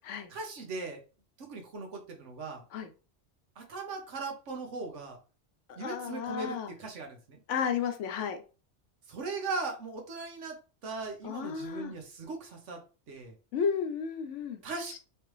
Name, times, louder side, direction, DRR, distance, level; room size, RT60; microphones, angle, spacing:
voice 1, 0.3-1.0 1.4-2.6 3.6-5.2 5.8-7.4 9.1-10.6 10.8-12.8 13.1-13.3 14.6-15.0, right 3 dB, 80° right, 3 dB, 1.3 m, -39 dB
voice 2, 5.7-6.7 7.5-8.4 11.2-11.9 13.5-14.6, left 7 dB, 80° left, 7 dB, 1.0 m, -33 dB
3.3 x 3.2 x 3.1 m, 0.34 s
omnidirectional pair, 1.2 m